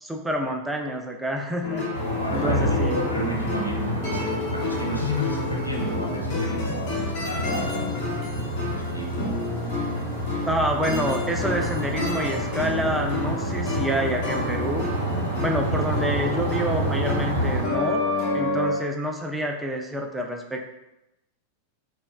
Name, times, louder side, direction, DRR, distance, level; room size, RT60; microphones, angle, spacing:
voice 1, 0.0-1.9 2.3-2.9 10.5-14.9 15.4-18.0 18.3-20.6, equal, 5° right, 1 dB, 0.4 m, -27 dB
sound 1, 1.6-18.7, left 2 dB, 45° left, 0.9 m, -30 dB
sound 2, 1.9-17.6, equal, 55° right, 0.7 m, -29 dB
voice 2, 2.2-8.1 8.7-9.5, left 1 dB, 90° left, -1 dB, 0.5 m, -32 dB
4.0 x 2.2 x 2.2 m, 0.92 s
figure-of-eight pair, 90°, 0 cm